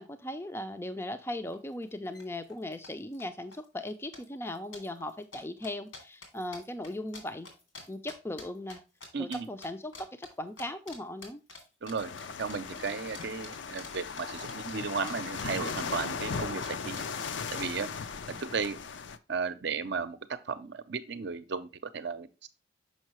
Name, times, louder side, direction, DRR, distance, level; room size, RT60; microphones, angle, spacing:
voice 1, 0.0-7.5 7.9-8.8 9.2-11.4, left 1 dB, 10° left, 8 dB, 0.4 m, -38 dB
sound 1, 1.5-1.6 1.8-2.2 2.5-3.2 3.5-3.9 4.1-8.8 9.0-9.7 9.9-10.3 10.6-11.0 11.2-15.4 15.7-17.6, left 3 dB, 90° left, 2.4 m, -47 dB
voice 2, 9.1-9.5 11.8-12.1 12.4-17.0 17.5-17.9 18.3-18.8 19.3-21.7 21.9-22.3, right 5 dB, 60° right, 11 dB, 0.6 m, -34 dB
sound 2, 12.0-19.2, left 5 dB, 65° left, 0.5 m, -37 dB
6.5 x 5.4 x 3.0 m, 0.30 s
head